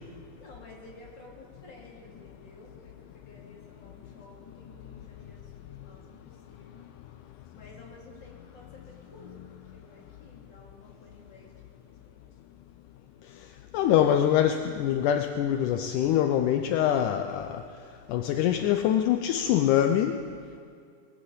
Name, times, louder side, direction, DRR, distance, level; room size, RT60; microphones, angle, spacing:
voice 1, 0.4-6.9 7.5-12.2, left 2 dB, 30° left, -3 dB, 3.2 m, -52 dB
voice 2, 13.7-17.6 18.1-20.2, left 10 dB, 80° left, 6 dB, 1.9 m, -24 dB
21.5 x 7.8 x 8.1 m, 2.3 s
omnidirectional pair, 4.2 m